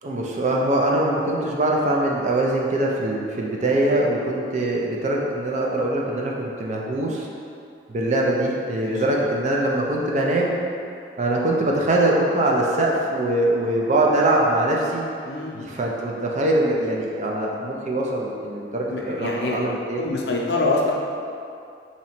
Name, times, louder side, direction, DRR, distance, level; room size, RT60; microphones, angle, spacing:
voice 1, 0.0-7.3 7.9-10.6 11.2-15.0 15.5-20.0, right 1 dB, 40° right, -2 dB, 0.5 m, -22 dB
voice 2, 8.8-9.2 15.2-15.7 18.9-19.7 19.9-20.9, left 2 dB, 65° left, -2 dB, 0.6 m, -25 dB
3.0 x 2.8 x 4.3 m, 2.5 s
head